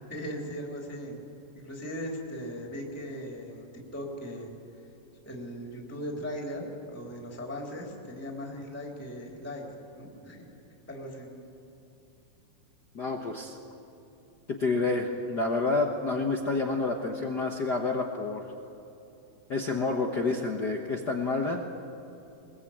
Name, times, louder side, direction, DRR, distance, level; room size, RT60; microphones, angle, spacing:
voice 1, 0.1-1.2 1.5-4.5 5.2-9.6 9.9-10.5 10.9-11.3, equal, 5° left, 0 dB, 3.1 m, -38 dB
voice 2, 12.9-13.6 14.5-18.5 19.5-21.6, left 3 dB, 65° left, 2 dB, 1.0 m, -29 dB
22.5 x 21.5 x 8.8 m, 2.9 s
omnidirectional pair, 3.9 m